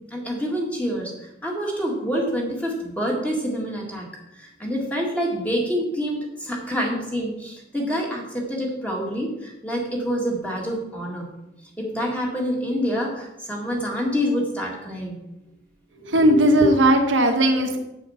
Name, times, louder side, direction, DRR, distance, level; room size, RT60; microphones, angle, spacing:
voice 1, 0.1-4.1 4.3-11.3 11.8-15.2, equal, 10° left, -2 dB, 2.0 m, -27 dB
voice 2, 16.0-17.8, right 1 dB, 90° right, 4 dB, 1.4 m, -17 dB
7.9 x 6.6 x 5.7 m, 0.89 s
head